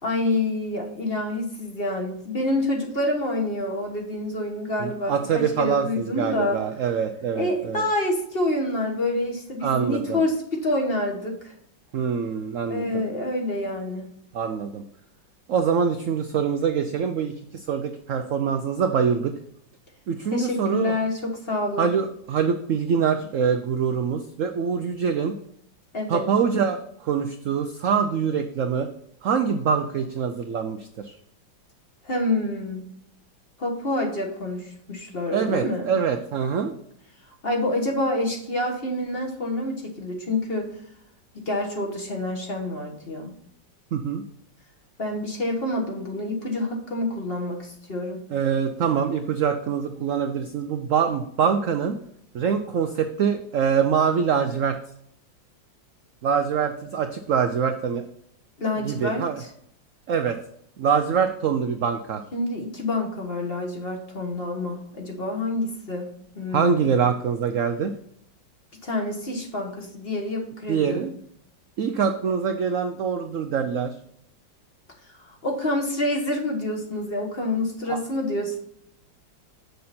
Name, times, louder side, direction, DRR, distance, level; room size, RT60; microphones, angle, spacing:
voice 1, 0.0-6.6 7.3-11.5 12.7-14.1 20.3-21.9 25.9-26.2 32.0-32.9 33.6-35.9 37.4-40.7 41.3-43.3 45.0-48.2 58.6-59.5 62.3-66.1 66.3-66.9 68.8-71.1 75.2-78.6, left 1 dB, 35° left, 0 dB, 1.4 m, -27 dB
voice 2, 4.8-7.8 9.6-10.2 11.9-13.0 14.3-14.8 15.5-19.3 20.1-21.0 21.8-25.4 26.1-28.9 29.2-31.1 35.3-36.7 43.9-44.2 48.3-52.0 52.3-54.8 56.2-58.0 58.8-59.4 60.1-60.4 60.8-62.2 66.5-67.9 70.7-71.1 71.8-73.9 77.9-78.0, right 6 dB, 70° right, 7 dB, 0.7 m, -24 dB
6.9 x 6.4 x 4.2 m, 0.70 s
omnidirectional pair, 2.0 m